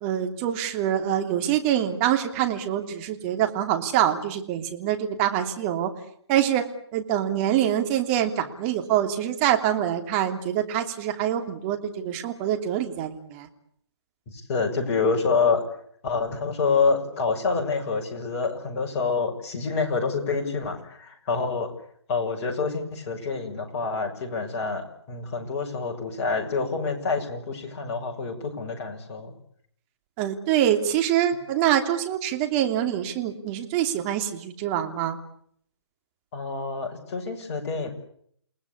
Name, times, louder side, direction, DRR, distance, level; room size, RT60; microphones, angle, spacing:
voice 1, 0.0-5.9 6.3-6.6 6.9-13.5 30.2-35.2, right 11 dB, 25° right, 5 dB, 3.0 m, -25 dB
voice 2, 14.3-15.6 16.0-21.7 22.1-29.3 36.3-37.9, left 4 dB, 30° left, 1 dB, 6.5 m, -27 dB
29.0 x 19.5 x 8.6 m, 0.66 s
figure-of-eight pair, 140°, 15 cm